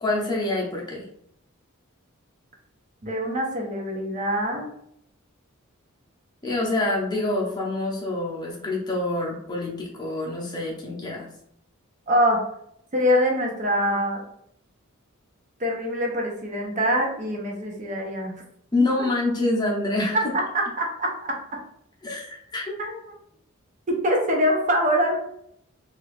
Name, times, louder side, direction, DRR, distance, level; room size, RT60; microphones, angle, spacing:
voice 1, 0.0-1.1 6.4-11.3 18.7-20.2 22.0-22.7, left 2 dB, 20° left, -3 dB, 0.7 m, -26 dB
voice 2, 3.0-4.7 12.1-12.4 12.9-14.2 15.6-18.4 20.5-21.4 22.8-23.0 24.0-25.2, equal, 35° right, 0 dB, 0.6 m, -24 dB
2.9 x 2.5 x 3.2 m, 0.72 s
head